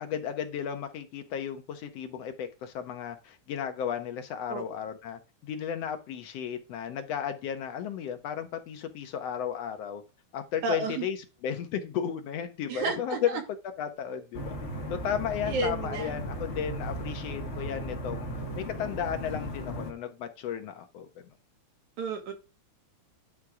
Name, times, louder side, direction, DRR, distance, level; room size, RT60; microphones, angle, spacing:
voice 1, 0.0-10.0 10.3-11.2 11.4-13.4 13.8-14.6 14.9-18.3 18.5-21.1, left 8 dB, 70° left, 1.8 m, -34 dB
voice 2, 10.6-11.1 12.7-13.4 15.5-16.1 22.0-22.3, right 3 dB, 85° right, 3.0 m, -31 dB
sound 1, 14.3-19.9, equal, 45° left, 0.9 m, -36 dB
9.9 x 3.6 x 4.8 m
omnidirectional pair, 3.3 m